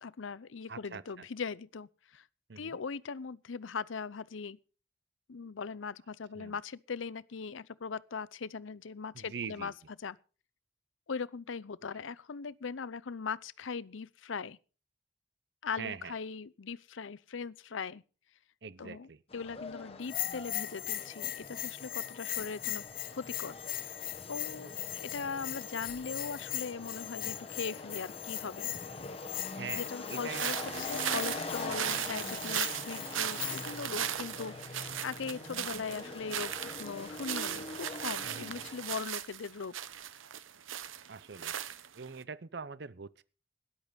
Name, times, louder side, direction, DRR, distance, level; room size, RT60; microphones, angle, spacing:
voice 1, 0.0-2.2 2.6-4.6 5.3-9.7 10.0-10.2 11.1-14.6 15.6-18.0 18.8-19.1 19.3-22.8 23.1-23.6 23.8-24.0 24.3-28.7 29.8-39.7, left 5 dB, 80° left, 0.6 m, -40 dB
voice 2, 0.7-1.3 2.5-2.8 6.3-6.6 9.1-9.7 15.8-16.1 18.6-19.2 24.6-24.8 29.5-31.1 38.2-38.7 41.1-41.5 41.9-43.2, right 5 dB, 55° right, 0.6 m, -43 dB
sound 1, 19.3-39.0, left 3 dB, 30° left, 1.5 m, -44 dB
Bell, 20.0-33.8, left 14 dB, 45° left, 0.9 m, -40 dB
sound 2, 30.3-42.2, right 10 dB, 90° right, 0.8 m, -37 dB
13.5 x 11.5 x 5.2 m
head